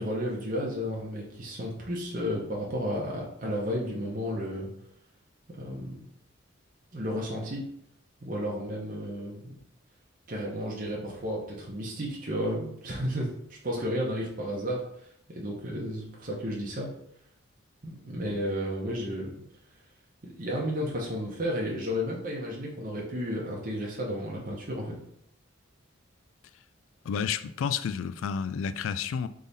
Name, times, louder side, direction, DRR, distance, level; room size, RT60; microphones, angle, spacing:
voice 1, 0.0-4.7 5.5-6.0 6.9-7.6 8.2-9.6 10.3-14.8 15.3-16.9 17.8-19.4 20.2-25.0, equal, 40° right, 0.9 m, -32 dB
voice 2, 27.1-29.3, left 7 dB, 75° left, 0.3 m, -30 dB
3.6 x 3.5 x 4.0 m
head